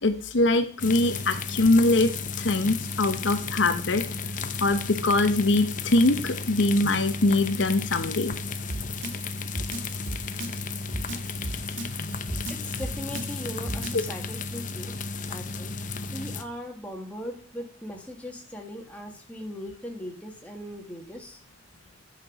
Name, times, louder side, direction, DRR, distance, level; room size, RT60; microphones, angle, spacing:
voice 1, 0.0-2.1 2.4-4.0 4.6-8.3 13.9-14.0, left 2 dB, 75° left, 9 dB, 0.9 m, -22 dB
sound 1, 0.8-16.4, left 4 dB, 45° left, 0.8 m, -33 dB
Drum kit, 8.7-14.0, right 1 dB, 85° right, 1.8 m, -34 dB
voice 2, 12.5-14.9 15.3-21.4, equal, 5° left, 1 dB, 1.8 m, -39 dB
11.0 x 6.0 x 5.9 m, 0.41 s
head